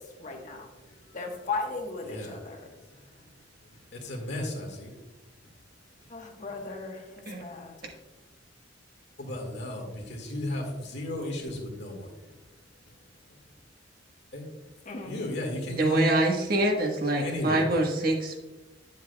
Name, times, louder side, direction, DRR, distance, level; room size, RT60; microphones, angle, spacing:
voice 1, 0.2-0.7 1.1-2.6 6.1-7.7 14.9-15.1, left 3 dB, 45° left, 2 dB, 1.2 m, -36 dB
voice 2, 2.1-2.6 3.0-3.1 3.9-4.9 9.2-12.1 14.3-14.5 15.0-16.0 17.2-17.7, left 1 dB, 65° left, 0 dB, 1.8 m, -35 dB
voice 3, 15.8-18.4, right 1 dB, 55° right, 1 dB, 1.3 m, -25 dB
10.0 x 7.4 x 2.3 m, 1.1 s
head